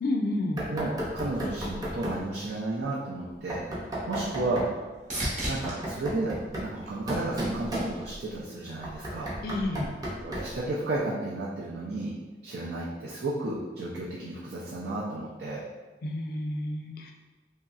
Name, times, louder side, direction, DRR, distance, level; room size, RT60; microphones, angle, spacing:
voice 1, 0.0-0.6 9.4-9.9 16.0-17.1, left 1 dB, 55° left, 2 dB, 0.4 m, -30 dB
Knock, 0.6-2.3 3.5-4.8 5.4-8.3 8.8-10.6, equal, 20° right, 0.5 m, -34 dB
voice 2, 0.7-3.6 4.1-4.7 5.5-9.3 10.2-12.1 12.4-15.6, right 2 dB, 80° right, -6 dB, 0.5 m, -33 dB
sound 1, 3.4-7.6 8.1-8.7 16.5-16.6, right 1 dB, 45° right, 0.9 m, -38 dB
3.0 x 2.7 x 2.3 m, 1.2 s
head